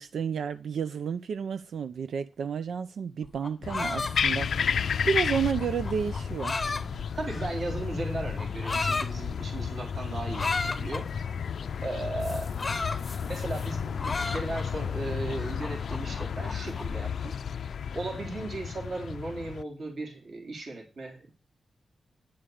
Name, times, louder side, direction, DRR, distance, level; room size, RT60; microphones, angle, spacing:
voice 1, 0.0-4.8 5.1-6.6, right 7 dB, 85° right, 0.5 m, -31 dB
sound 1, 3.2-7.7 8.4-9.1 10.3-11.0 12.2-13.7 14.0-14.8 15.3-17.0, left 3 dB, 25° left, 0.7 m, -34 dB
sound 2, 3.6-19.6, left 7 dB, 65° left, 0.5 m, -32 dB
sound 3, 3.6-3.8 4.2-4.6 5.0-5.4 5.8-6.2 6.6-7.0 7.4-7.8 8.2-8.6, right 1 dB, 20° right, 1.8 m, -44 dB
voice 2, 7.1-11.1 11.8-12.6 13.2-17.3 17.9-21.3, right 2 dB, 55° right, 3.4 m, -36 dB
10.5 x 5.1 x 6.9 m
wide cardioid pair, 175°, 0 cm